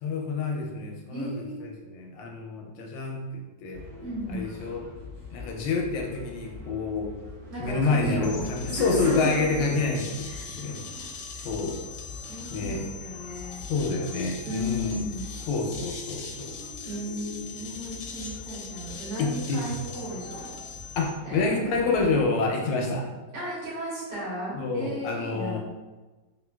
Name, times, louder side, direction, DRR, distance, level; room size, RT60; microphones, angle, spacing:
voice 1, 0.0-1.3 1.6-3.2 3.6-3.8 4.3-4.9 5.3-7.1 7.6-10.1 10.5-10.8 11.4-11.8 12.5-12.8 13.7-15.0 15.5-16.5 19.2-19.7 21.0-23.0 24.6-25.6, left 3 dB, 90° left, 1 dB, 1.3 m, -28 dB
voice 2, 1.1-1.7 4.0-4.5 7.5-9.9 10.2-11.0 11.3-11.5 12.3-13.6 14.5-15.2 16.9-20.6 21.2-22.0 23.3-25.6, equal, 70° right, -8 dB, 1.8 m, -35 dB
sound 1, 3.7-22.3, left 3 dB, 55° right, 1.2 m, -44 dB
sound 2, 8.2-21.1, left 5 dB, 70° left, 0.9 m, -42 dB
3.6 x 2.5 x 2.2 m, 1.2 s
omnidirectional pair, 2.0 m